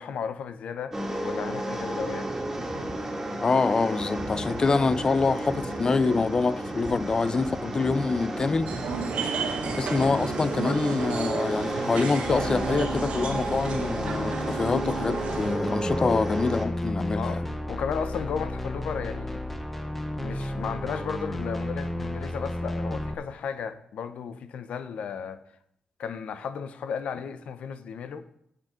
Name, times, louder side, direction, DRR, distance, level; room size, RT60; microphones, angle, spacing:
voice 1, 0.0-2.4 16.0-16.2 17.1-17.4 17.7-19.4 20.2-25.4 26.0-28.2, left 6 dB, 80° left, 0.8 m, -34 dB
sound 1, 0.9-16.7, right 1 dB, 20° right, 2.2 m, -32 dB
voice 2, 3.4-8.7 9.6-17.4, left 4 dB, 35° left, 0.5 m, -26 dB
sound 2, 8.7-15.6, right 5 dB, 85° right, 1.7 m, -33 dB
sound 3, 12.2-23.1, left 1 dB, 10° left, 0.9 m, -33 dB
9.9 x 6.8 x 5.0 m
cardioid pair, 85°, 2 cm